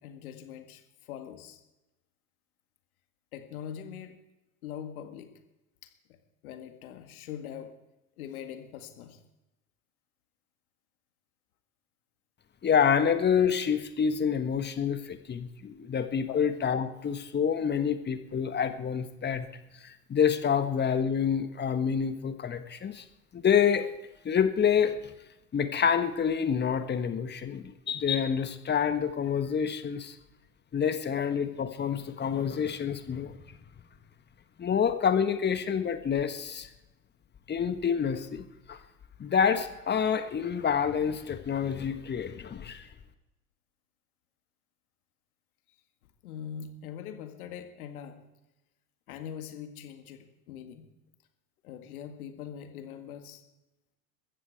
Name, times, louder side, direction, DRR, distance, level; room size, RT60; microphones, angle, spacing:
voice 1, 0.0-1.6 3.3-4.2 4.6-5.4 5.8-6.2 6.4-7.8 8.2-9.2 16.3-16.4 46.2-48.2 49.1-50.9 51.6-53.4, left 9 dB, 65° left, 6 dB, 2.0 m, -42 dB
voice 2, 12.6-19.5 19.8-23.0 23.3-23.9 24.2-25.0 25.5-30.1 30.7-33.4 34.6-36.7 37.5-38.8 39.2-42.9, left 7 dB, 20° left, 10 dB, 1.4 m, -27 dB
21.5 x 14.5 x 4.7 m, 0.99 s
figure-of-eight pair, 80°, 46 cm